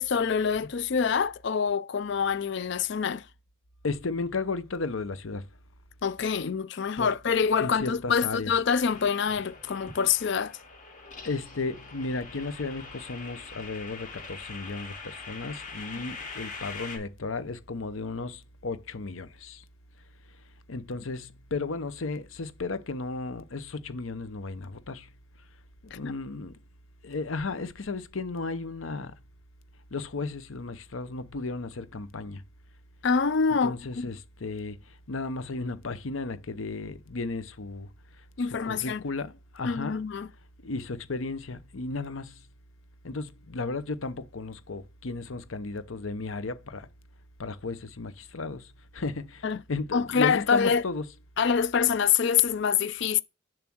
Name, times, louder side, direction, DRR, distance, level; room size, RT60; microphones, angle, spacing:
voice 1, 0.0-3.3 6.0-10.6 25.9-26.1 33.0-34.1 38.4-39.0 39.6-40.3 49.4-49.6 49.9-50.8 51.4-53.2, left 6 dB, 60° left, 0.5 m, -26 dB
voice 2, 3.8-5.5 7.0-7.1 7.6-8.5 11.2-19.6 20.7-25.1 25.8-26.6 27.0-29.1 29.9-32.4 33.6-37.9 38.6-40.0 40.6-42.4 43.0-46.9 47.4-51.0, left 3 dB, 80° left, 0.8 m, -34 dB
Unheard Stones, 8.8-17.0, left 4 dB, 40° left, 2.5 m, -43 dB
7.1 x 3.3 x 6.2 m
head